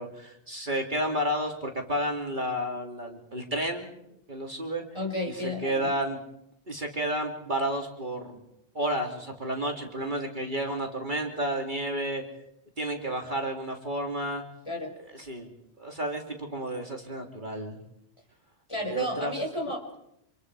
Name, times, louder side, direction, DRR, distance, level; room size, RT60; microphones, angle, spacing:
voice 1, 0.0-4.0 4.3-4.8 5.3-6.2 6.7-8.4 8.7-12.2 12.8-14.4 15.1-17.8 18.9-19.3, right 1 dB, 45° right, 2 dB, 3.1 m, -31 dB
voice 2, 4.9-5.9 14.6-14.9 18.7-20.0, left 1 dB, 25° left, 2 dB, 5.6 m, -32 dB
29.0 x 27.5 x 4.9 m, 0.79 s
omnidirectional pair, 1.2 m